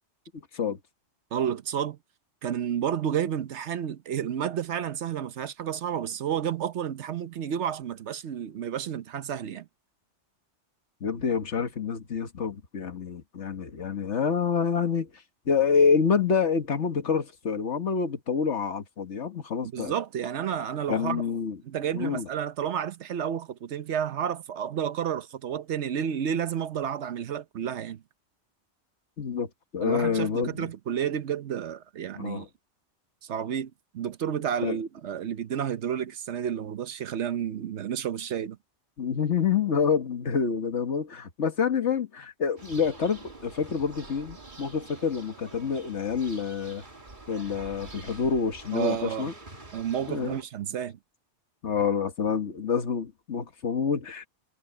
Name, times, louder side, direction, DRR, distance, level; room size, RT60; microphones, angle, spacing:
voice 1, 0.3-0.8 11.0-15.1 15.5-19.9 20.9-21.6 21.9-22.3 29.2-30.7 32.2-32.5 34.6-34.8 39.0-46.8 47.3-49.3 50.1-50.4 51.6-54.3, left 6 dB, 75° left, 1.7 m, -27 dB
voice 2, 1.3-2.0 2.4-9.7 19.7-21.2 21.6-28.0 29.8-32.5 33.2-38.6 48.7-49.3 49.7-51.0, right 9 dB, 75° right, 1.1 m, -31 dB
sound 1, 42.6-50.4, right 3 dB, 40° right, 2.5 m, -46 dB
omnidirectional pair, 1.2 m